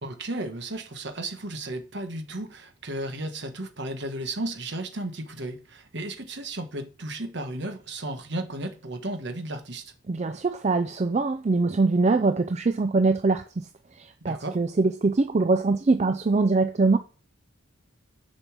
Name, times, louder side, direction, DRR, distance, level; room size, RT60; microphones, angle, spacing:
voice 1, 0.0-9.9 14.2-14.6, right 1 dB, 55° right, 1.3 m, -34 dB
voice 2, 10.1-13.7 13.9-17.0, right 3 dB, 30° right, 0.4 m, -23 dB
6.8 x 5.4 x 6.0 m
head